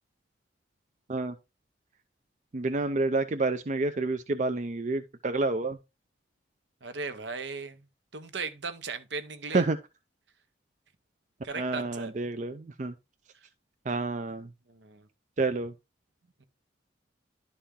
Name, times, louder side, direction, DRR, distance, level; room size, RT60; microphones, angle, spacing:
voice 1, 2.5-5.8 9.5-9.8 11.5-12.9 13.9-14.5 15.4-15.7, right 3 dB, 40° right, 0.5 m, -29 dB
voice 2, 6.8-7.8 8.1-9.6 11.4-12.1 14.7-15.1 16.4-16.5, right 4 dB, 70° right, 0.9 m, -37 dB
11.5 x 4.3 x 3.7 m
head